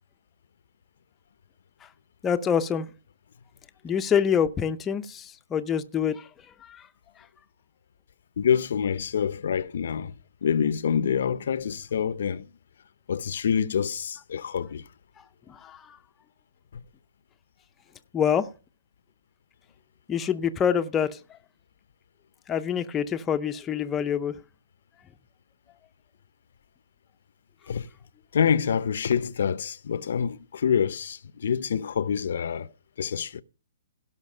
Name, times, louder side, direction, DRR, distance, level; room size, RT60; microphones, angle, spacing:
voice 1, 2.2-2.9 3.8-6.3 6.7-6.8 15.5-16.0 18.1-18.5 20.1-21.1 22.5-24.3, left 8 dB, 15° left, 0.6 m, -26 dB
voice 2, 8.4-10.1 10.4-12.5 13.1-14.8 27.7-27.9 28.3-32.7 33.0-33.4, left 7 dB, 65° left, 0.6 m, -26 dB
17.0 x 5.7 x 5.4 m
hypercardioid pair, 160°, 0 cm